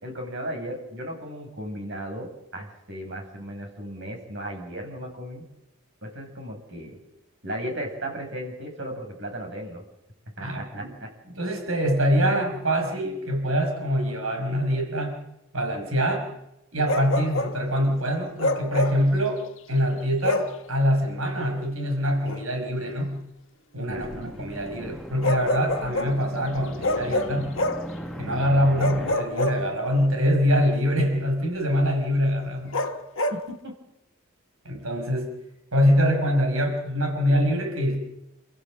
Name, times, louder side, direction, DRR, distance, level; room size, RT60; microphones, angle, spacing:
voice 1, 0.0-5.4 6.0-7.0 7.4-9.8 10.4-11.1 23.9-24.3 33.5-33.7, right 1 dB, 60° right, 2 dB, 6.7 m, -35 dB
voice 2, 10.4-10.9 11.4-15.2 15.5-16.3 16.7-23.2 23.7-27.5 28.2-32.8 34.6-35.3 35.7-38.0, equal, 80° right, 3 dB, 5.9 m, -24 dB
Bark, 16.9-17.6 18.4-19.1 20.2-20.6 22.3-22.4 25.2-26.2 26.8-27.9 28.8-30.0 32.7-33.4, left 1 dB, 65° left, 1.5 m, -27 dB
sound 1, 23.9-29.2, equal, ahead, 1.8 m, -38 dB
29.5 x 14.5 x 7.7 m, 0.89 s
head